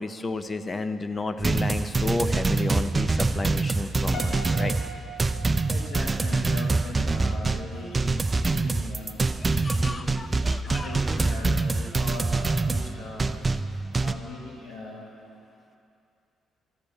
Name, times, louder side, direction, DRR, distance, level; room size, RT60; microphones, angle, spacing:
voice 1, 0.0-4.7 9.4-10.9, left 2 dB, 30° left, 9 dB, 0.5 m, -32 dB
sound 1, 1.4-14.1, right 3 dB, 25° right, 0.4 m, -25 dB
Piano, 4.1-6.4, equal, 50° left, 1.3 m, -40 dB
voice 2, 5.7-9.2 9.5-10.2 10.6-13.3 13.9-15.1, left 2 dB, 85° left, -4 dB, 2.2 m, -39 dB
13.5 x 4.5 x 7.0 m, 2.5 s
cardioid pair, 90°, 0 cm